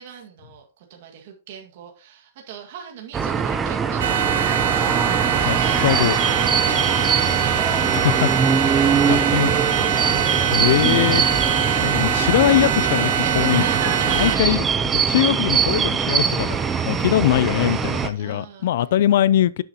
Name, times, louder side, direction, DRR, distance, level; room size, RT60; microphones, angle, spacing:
voice 1, 0.0-5.8 6.4-7.9 8.7-9.4 13.2-14.6 18.1-18.7, right 8 dB, 50° right, 1.9 m, -38 dB
sound 1, 3.1-18.1, right 6 dB, 15° right, 0.6 m, -22 dB
sound 2, 4.0-14.4, right 9 dB, 65° right, 1.1 m, -23 dB
voice 2, 5.4-6.2 7.9-8.3 9.0-9.5 10.5-11.2 11.8-13.6 14.1-14.6 14.9-16.6 16.9-19.6, left 12 dB, 55° left, 0.4 m, -21 dB
10.0 x 7.8 x 2.9 m
hypercardioid pair, 165°, 0 cm